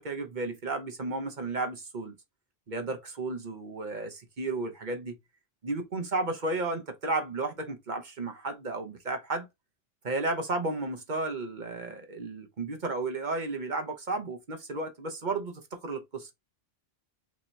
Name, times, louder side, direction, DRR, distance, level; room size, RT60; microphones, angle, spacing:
voice 1, 0.0-2.1 2.7-5.2 5.6-9.5 10.0-16.3, right 2 dB, 45° right, 1.0 m, -33 dB
5.2 x 2.9 x 3.2 m
omnidirectional pair, 1.2 m